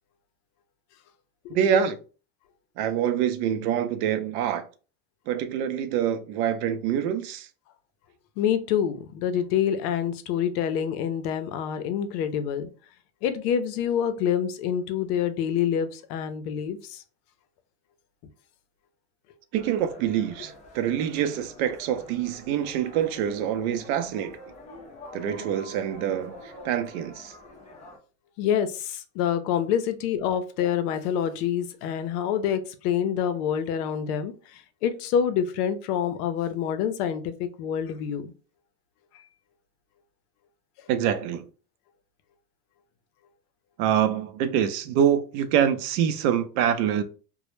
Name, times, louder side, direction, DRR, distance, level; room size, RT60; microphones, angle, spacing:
voice 1, 1.5-2.0 2.8-4.6 5.3-7.5 19.5-24.4 25.1-27.3 40.9-41.4 43.8-47.0, right 9 dB, 65° right, 0.5 m, -25 dB
voice 2, 8.4-12.7 13.2-17.0 28.4-34.3 34.8-38.3, left 8 dB, 70° left, 0.5 m, -26 dB
sound 1, 19.5-28.0, left 1 dB, 15° left, 0.4 m, -47 dB
2.1 x 2.0 x 3.0 m
supercardioid pair, 130°, 48 cm